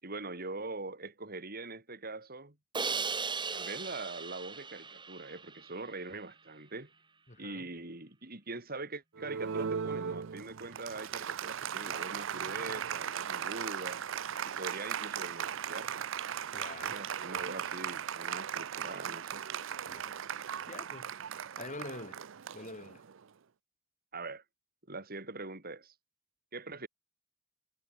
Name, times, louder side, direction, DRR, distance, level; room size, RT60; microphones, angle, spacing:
voice 1, 0.0-2.6 3.5-6.9 7.4-14.0 14.4-16.1 16.8-19.4 24.1-24.4 24.9-25.9 26.5-26.9, right 3 dB, 50° right, 6.2 m, -42 dB
Crash cymbal, 2.7-5.8, right 5 dB, 25° right, 1.7 m, -37 dB
voice 2, 7.3-7.7 16.5-17.0 19.9-20.1 20.7-21.1 21.6-22.2 22.5-23.0, left 2 dB, 40° left, 6.1 m, -45 dB
Applause, 9.2-23.2, right 8 dB, 70° right, 0.6 m, -38 dB
head